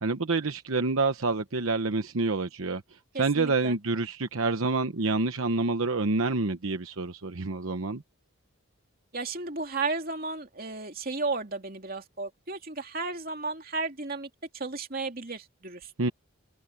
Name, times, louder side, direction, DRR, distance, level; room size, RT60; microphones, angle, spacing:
voice 1, 0.0-2.8 3.2-8.0 16.0-16.1, right 3 dB, 75° right, 1.0 m, -27 dB
voice 2, 3.1-3.8 9.1-14.3 14.5-15.9, right 3 dB, 45° right, 2.8 m, -34 dB
head